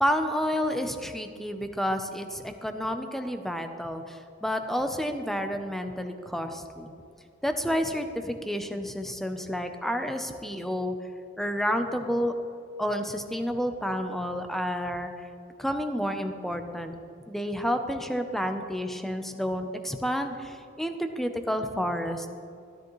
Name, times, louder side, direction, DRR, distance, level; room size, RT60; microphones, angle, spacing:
voice 1, 0.0-6.9 7.4-11.0 11.4-12.3 12.8-15.3 15.6-17.0 17.3-22.4, equal, ahead, 6 dB, 0.6 m, -30 dB
13.0 x 12.5 x 3.1 m, 2.4 s
head